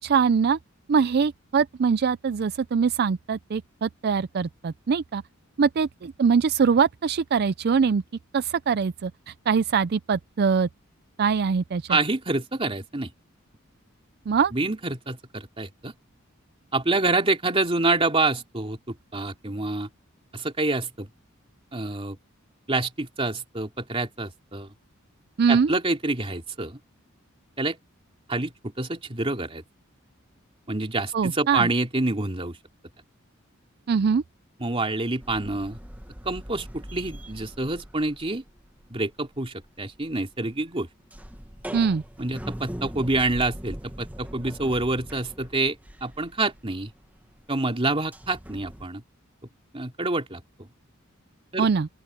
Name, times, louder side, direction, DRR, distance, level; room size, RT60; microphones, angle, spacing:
voice 1, 0.0-0.6 0.9-5.2 5.6-8.0 8.3-10.7 11.2-12.0 14.3-14.5 25.4-25.7 31.1-31.7 33.9-34.2 41.7-42.0 51.6-51.9, right 6 dB, 50° right, 0.4 m, -23 dB
voice 2, 11.9-13.1 14.5-15.9 16.7-19.9 20.3-21.1 21.7-22.2 22.7-24.7 25.5-26.8 27.6-27.8 28.3-29.6 30.7-32.6 34.6-35.8 36.2-38.4 38.9-40.9 42.2-45.8 46.0-46.9 47.5-49.0 49.7-50.7 51.5-51.7, right 2 dB, 30° right, 2.8 m, -27 dB
sound 1, 35.2-39.0 39.2-48.9, equal, 10° right, 1.2 m, -41 dB
open air
head